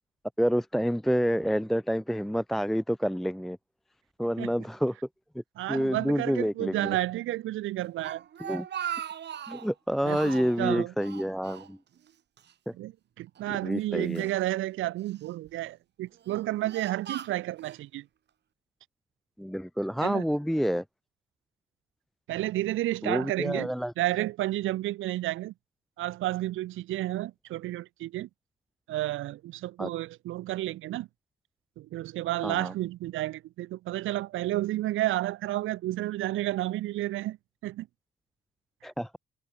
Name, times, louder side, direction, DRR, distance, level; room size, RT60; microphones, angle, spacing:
voice 1, 0.4-3.6 4.2-5.0 5.3-5.4 5.7-7.0 8.4-8.7 9.5-11.8 12.7-12.8 13.6-14.3 19.4-20.8 23.0-23.9 29.8-29.9 32.4-32.7 38.8-39.1, equal, ahead, 0.5 m, -28 dB
voice 2, 5.6-8.2 10.0-10.9 12.7-12.9 13.2-18.1 20.0-20.2 22.3-25.5 26.0-28.3 28.9-31.1 31.8-37.4 37.6-37.9, right 15 dB, 80° right, 0.5 m, -31 dB
Speech, 7.8-9.7 10.1-10.6 11.0-12.1 12.4-12.5 13.4-14.4 15.1-15.5 16.1-17.8, right 9 dB, 60° right, 1.6 m, -39 dB
cardioid pair, 105°, 20 cm